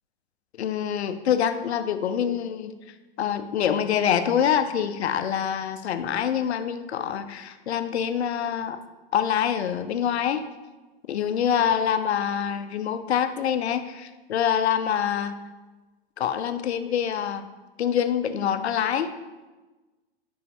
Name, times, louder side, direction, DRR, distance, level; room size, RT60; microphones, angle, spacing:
voice 1, 0.6-2.7 3.2-8.8 9.1-10.5 11.1-15.3 16.2-17.5 17.8-19.1, left 8 dB, 85° left, 10 dB, 0.6 m, -25 dB
5.7 x 5.5 x 4.9 m, 1.2 s
hypercardioid pair, 125°, 32 cm